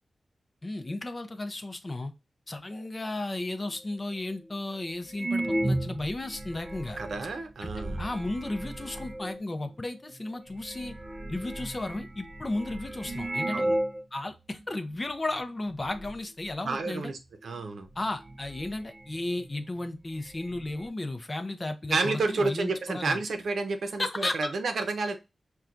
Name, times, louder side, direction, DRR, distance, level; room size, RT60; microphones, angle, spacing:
voice 1, 0.6-2.1 2.5-7.0 7.6-7.7 8.0-10.9 11.3-13.6 14.1-17.1 18.0-23.2 24.0-24.5, left 2 dB, 30° left, 7 dB, 0.5 m, -34 dB
sound 1, 3.7-3.8 4.4-4.5 5.1-9.4 10.2-10.3 10.5-14.0 14.3-14.4 15.1-15.4 15.7-16.2 17.4-17.5 18.0-19.5 19.8-19.9 20.1-20.9, right 1 dB, 35° right, 0.4 m, -34 dB
voice 2, 7.0-8.0 13.5-13.8 16.6-17.9 21.9-25.2, right 3 dB, 80° right, 7 dB, 0.6 m, -30 dB
5.7 x 2.3 x 2.5 m, 0.25 s
wide cardioid pair, 110°, 0 cm